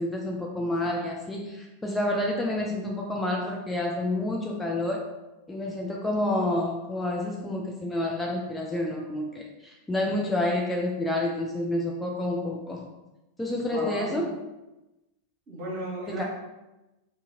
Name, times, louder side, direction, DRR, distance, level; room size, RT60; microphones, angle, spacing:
voice 1, 0.0-5.1 5.5-12.9 13.4-14.3 16.1-16.2, left 1 dB, 10° left, -1 dB, 0.4 m, -29 dB
voice 2, 13.7-14.3 15.5-16.2, right 1 dB, 45° right, -4 dB, 1.2 m, -34 dB
2.7 x 2.6 x 3.5 m, 1.0 s
figure-of-eight pair, 90°, 0 cm